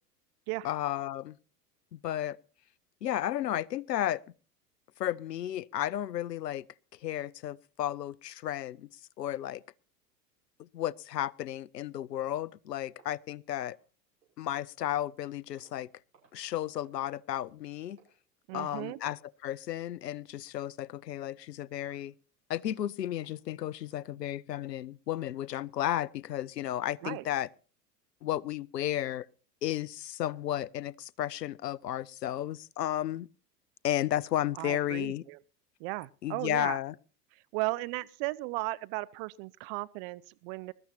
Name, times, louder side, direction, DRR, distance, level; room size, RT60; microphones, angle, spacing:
voice 1, 0.6-1.4 1.9-2.4 3.0-4.2 5.0-6.7 7.0-8.9 9.2-9.6 10.6-13.8 14.4-15.9 16.3-18.0 18.5-22.1 22.5-27.5 28.2-29.3 29.6-33.3 33.8-35.2 36.2-36.9, left 12 dB, 85° left, 0.6 m, -33 dB
sound 1, 13.0-14.5 14.8-15.2 15.5-15.9 16.1-16.5 16.7-17.0 17.3-17.6 18.0-18.2 18.6-18.9 19.2-19.4 19.8-20.0 20.5-20.6 21.1-21.2 21.8-22.1 22.5-24.0, right 5 dB, 80° right, 6.3 m, -66 dB
voice 2, 18.5-19.0 27.0-27.3 34.5-35.4 35.8-36.8 37.3-40.7, right 22 dB, 40° right, 0.6 m, -36 dB
21.0 x 13.0 x 2.8 m
figure-of-eight pair, 85°, 48 cm